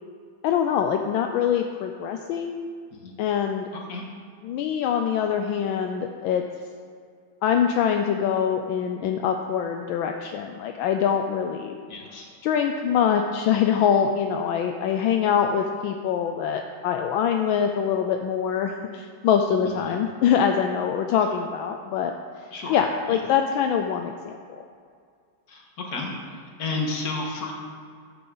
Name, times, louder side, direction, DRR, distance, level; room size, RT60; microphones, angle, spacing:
voice 1, 0.4-2.7 3.2-3.7 4.4-6.4 7.4-11.8 12.4-22.1 22.7-24.6, left 8 dB, 80° left, 5 dB, 1.4 m, -24 dB
voice 2, 11.9-12.3 19.8-19.9 22.5-22.8 25.5-26.1 26.6-27.5, left 3 dB, 50° left, 0 dB, 1.9 m, -31 dB
12.0 x 9.0 x 3.9 m, 2.2 s
omnidirectional pair, 2.2 m